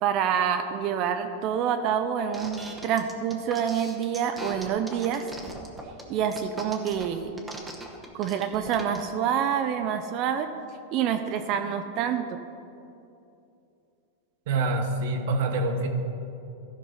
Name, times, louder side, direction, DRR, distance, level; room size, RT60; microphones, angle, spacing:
voice 1, 0.0-5.3 6.1-7.3 8.1-10.5 10.9-12.3, right 8 dB, 40° right, 8 dB, 0.5 m, -27 dB
sound 1, 2.3-9.0, right 1 dB, 5° right, 1.0 m, -40 dB
voice 2, 14.5-15.9, right 2 dB, 60° right, 6 dB, 1.2 m, -26 dB
14.0 x 5.3 x 5.5 m, 2.7 s
supercardioid pair, 155°, 0 cm